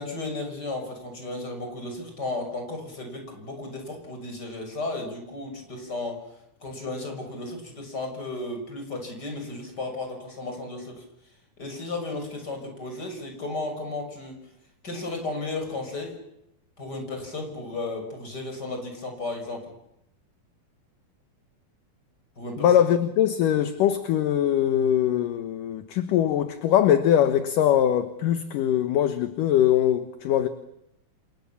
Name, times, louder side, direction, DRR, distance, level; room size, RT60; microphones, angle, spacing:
voice 1, 0.0-6.2 6.6-11.0 11.6-14.4 14.8-16.2 16.8-19.6 22.4-22.7, left 2 dB, 25° left, 6.7 m, -34 dB
voice 2, 22.6-30.5, left 10 dB, 70° left, 2.6 m, -22 dB
29.0 x 28.5 x 7.2 m
omnidirectional pair, 4.2 m